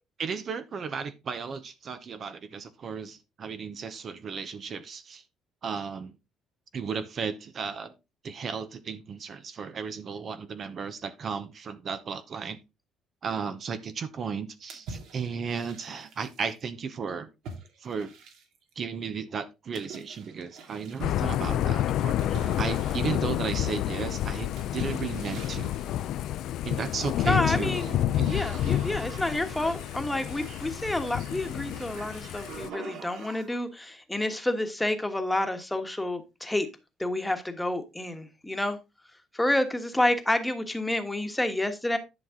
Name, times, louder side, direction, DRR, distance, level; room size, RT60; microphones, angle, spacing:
voice 1, 0.2-5.2 5.6-6.1 6.7-7.9 8.2-12.6 13.2-17.3 17.8-18.1 18.8-22.2 22.6-25.7 26.6-27.7 28.2-28.3, right 6 dB, 40° right, 0.8 m, -34 dB
sound 1, 14.7-16.5 17.4-18.7 19.7-21.1 22.2-23.9 24.6-26.1 26.7-27.4 27.7-33.7, right 5 dB, 75° right, 2.4 m, -46 dB
Thunder / Rain, 21.0-32.7, left 12 dB, 70° left, 0.5 m, -29 dB
voice 2, 27.2-27.9 28.3-36.7 37.0-38.8 39.3-42.0, left 1 dB, 5° left, 1.3 m, -29 dB
11.0 x 5.8 x 3.7 m
cardioid pair, 130°, 0 cm